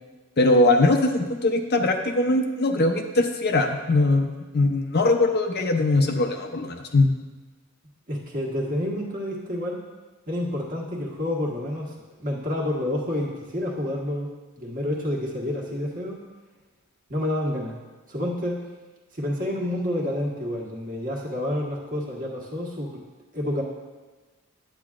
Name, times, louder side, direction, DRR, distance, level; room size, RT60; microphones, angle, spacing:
voice 1, 0.4-7.1, left 2 dB, 45° left, 4 dB, 0.6 m, -21 dB
voice 2, 8.1-9.8 10.3-11.9 12.2-14.3 14.6-16.2 17.1-17.8 18.1-18.6 19.1-23.0 23.3-23.6, left 1 dB, 40° right, -2 dB, 1.4 m, -29 dB
10.5 x 8.5 x 2.4 m, 1.3 s
head